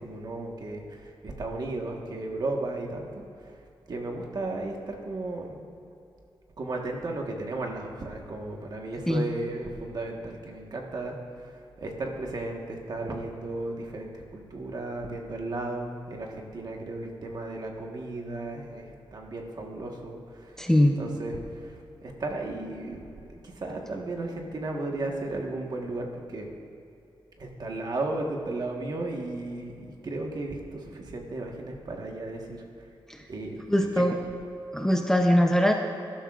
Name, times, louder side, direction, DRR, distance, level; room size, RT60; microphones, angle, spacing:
voice 1, 0.0-3.2 3.9-5.6 6.6-20.7 21.0-23.0 23.4-26.5 27.4-32.6 33.3-33.6 33.9-34.1, right 2 dB, 50° right, 1 dB, 1.4 m, -35 dB
voice 2, 20.6-21.0 33.1-33.2 33.7-34.1 34.7-35.7, equal, 5° left, 2 dB, 0.6 m, -22 dB
19.0 x 12.0 x 2.5 m, 2.7 s
wide cardioid pair, 175°, 9 cm